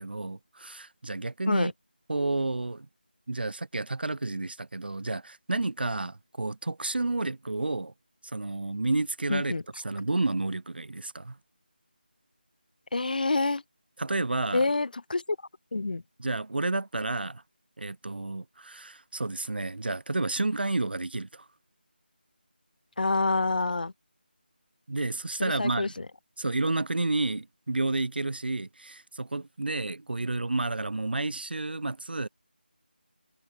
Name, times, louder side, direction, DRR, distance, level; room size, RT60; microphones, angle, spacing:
voice 1, 0.0-1.7 2.1-2.9 3.3-7.9 8.2-11.4 14.0-14.7 16.2-17.4 17.8-21.5 24.9-25.9 26.4-32.3, right 2 dB, 70° right, 0.6 m, -30 dB
voice 2, 9.3-9.6 12.9-13.6 14.5-15.2 15.7-16.0 23.0-23.9 25.4-26.1, left 3 dB, 55° left, 0.5 m, -27 dB
figure-of-eight pair, 165°, 6 cm